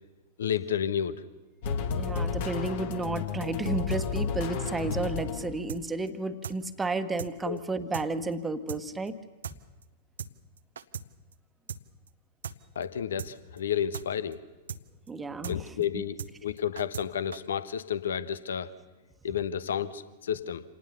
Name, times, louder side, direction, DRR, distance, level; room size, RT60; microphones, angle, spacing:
voice 1, 0.4-1.2 7.4-7.6 12.7-14.4 15.5-18.7 19.2-20.6, left 8 dB, 70° left, 15 dB, 1.0 m, -31 dB
sound 1, 1.6-5.8, left 5 dB, 55° left, 1.8 m, -32 dB
voice 2, 1.9-9.1 15.1-16.0, right 3 dB, 15° right, 10 dB, 1.4 m, -32 dB
sound 2, 5.7-5.8 6.1-6.2 6.4-6.6 6.8-6.9 7.2-7.3 7.6-7.7 7.9-8.1 8.3-8.4 8.7-8.8 9.1-9.2 9.4-9.6 9.8-9.9 10.2-10.3 10.6-11.1 11.3-11.4 11.7-11.8 12.1-12.2 12.4-12.6 12.8-12.9 13.2-13.3 13.6-13.7 13.9-14.1 14.3-14.4 14.7-14.8 15.1-15.2 15.4-15.6 15.8-15.9 16.2-16.3 16.6-17.1 17.3-17.4, right 7 dB, 75° right, 0.8 m, -38 dB
26.5 x 19.0 x 7.0 m, 1.2 s
figure-of-eight pair, 100°, 0 cm